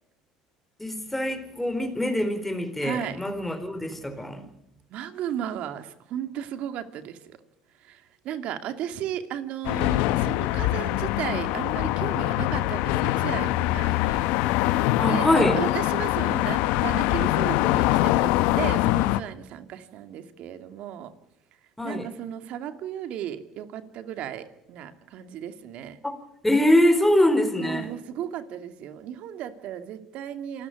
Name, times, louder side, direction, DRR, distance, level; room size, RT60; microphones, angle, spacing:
voice 1, 0.8-4.4 15.0-15.6 21.8-22.1 26.0-26.2 26.4-27.9, left 1 dB, 5° left, 7 dB, 4.4 m, -23 dB
voice 2, 2.8-3.2 4.9-7.4 7.8-14.2 15.0-21.1 21.8-26.0 27.6-30.7, right 10 dB, 65° right, 8 dB, 2.5 m, -35 dB
sound 1, 9.6-19.2, left 16 dB, 75° left, 0.8 m, -24 dB
27.5 x 13.5 x 9.5 m, 0.82 s
supercardioid pair, 80°, 2 cm